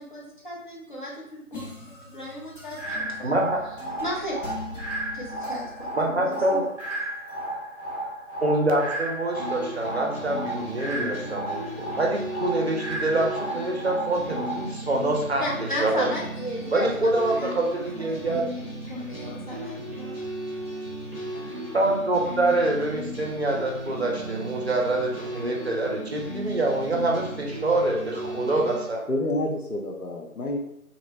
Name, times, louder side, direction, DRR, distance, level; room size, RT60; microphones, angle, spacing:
voice 1, 0.0-1.6 2.0-3.3 4.0-4.4 5.1-6.6 15.4-20.1 21.3-21.4, equal, 35° left, -5 dB, 0.8 m, -35 dB
sound 1, 1.5-7.5, left 2 dB, 60° left, 1.4 m, -42 dB
sound 2, 2.8-14.8, right 1 dB, 10° right, 1.4 m, -34 dB
voice 2, 3.2-3.6 6.0-6.7 8.4-15.4 15.8-16.1 16.7-18.4 21.7-29.0, right 2 dB, 50° right, 0 dB, 0.6 m, -25 dB
sound 3, 9.3-28.8, right 1 dB, 5° left, 1.1 m, -36 dB
voice 3, 29.1-30.6, left 1 dB, 85° left, 0 dB, 0.9 m, -28 dB
3.0 x 2.9 x 2.7 m, 0.78 s
figure-of-eight pair, 155°, 43 cm